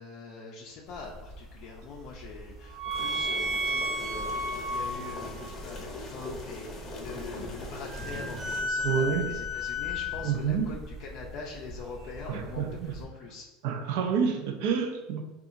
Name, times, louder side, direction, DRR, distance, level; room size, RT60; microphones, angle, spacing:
voice 1, 0.0-13.5, left 4 dB, 55° left, -2 dB, 0.4 m, -43 dB
sound 1, 0.9-13.0, equal, 20° right, 0.7 m, -35 dB
sound 2, 2.9-8.6, left 2 dB, 25° left, 0.8 m, -41 dB
voice 2, 8.8-9.3 10.2-10.7 12.3-12.9 13.6-15.2, right 7 dB, 70° right, 5 dB, 0.4 m, -28 dB
2.8 x 2.3 x 2.5 m, 1.1 s
supercardioid pair, 115°, 0 cm